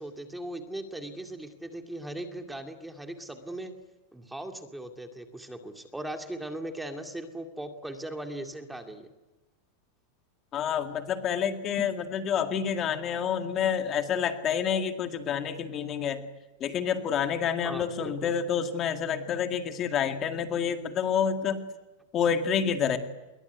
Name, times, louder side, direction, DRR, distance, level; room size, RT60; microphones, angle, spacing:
voice 1, 0.0-3.7 4.1-9.1 17.6-18.3, right 1 dB, 5° right, 6 dB, 2.2 m, -39 dB
voice 2, 10.5-16.2 16.6-21.6 22.1-23.0, left 7 dB, 25° left, 7 dB, 2.0 m, -28 dB
27.0 x 22.5 x 9.4 m, 1.1 s
supercardioid pair, 155°, 0 cm